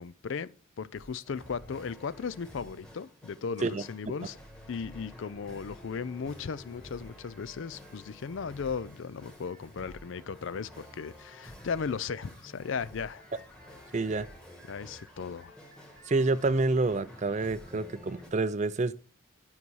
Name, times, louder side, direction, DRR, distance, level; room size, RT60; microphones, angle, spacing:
voice 1, 0.0-4.4 4.7-13.2 14.7-15.6, left 5 dB, 65° left, 0.4 m, -36 dB
sound 1, 0.9-18.3, left 1 dB, 5° left, 1.5 m, -50 dB
voice 2, 13.9-14.3 16.1-18.9, right 3 dB, 35° right, 0.4 m, -28 dB
9.6 x 5.6 x 4.7 m
head